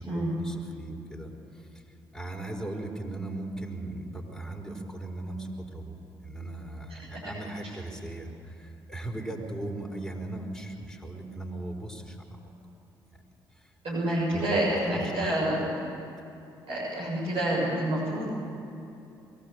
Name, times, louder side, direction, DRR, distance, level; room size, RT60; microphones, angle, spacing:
voice 1, 0.0-1.8 2.1-6.0 6.2-12.5 13.1-13.2 13.5-13.7 14.3-15.3, right 2 dB, 5° left, 0 dB, 4.8 m, -38 dB
voice 2, 13.8-15.7 16.7-18.3, right 1 dB, 50° right, -7 dB, 7.0 m, -28 dB
23.0 x 17.0 x 8.2 m, 2.7 s
figure-of-eight pair, 40°, 12 cm